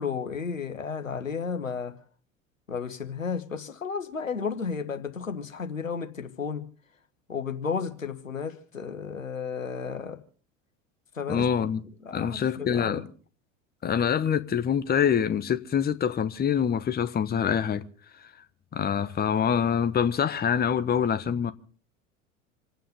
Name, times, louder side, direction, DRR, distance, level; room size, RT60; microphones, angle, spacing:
voice 1, 0.0-1.9 2.7-6.7 7.3-10.2 11.1-11.5 12.0-13.0, left 6 dB, 85° left, 1.4 m, -33 dB
voice 2, 11.3-11.8 12.1-13.1 13.8-17.8 18.7-21.5, left 8 dB, 25° left, 1.2 m, -25 dB
27.0 x 9.2 x 5.3 m
figure-of-eight pair, 75°, 38 cm